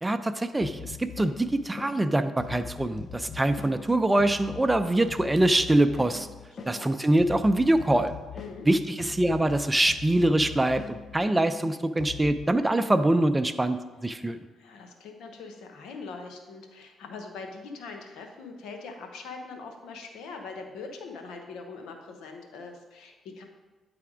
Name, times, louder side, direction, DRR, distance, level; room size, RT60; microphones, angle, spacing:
voice 1, 0.0-6.3 6.7-8.1 8.7-13.8 14.0-14.5, right 1 dB, 15° right, 10 dB, 0.5 m, -24 dB
sound 1, 0.6-12.5, left 7 dB, 50° left, 0.5 m, -42 dB
voice 2, 6.5-6.9 8.3-8.7 14.2-14.3 14.5-23.4, left 4 dB, 85° left, 4 dB, 0.9 m, -42 dB
9.4 x 3.4 x 4.9 m, 1.2 s
supercardioid pair, 65°, 0 cm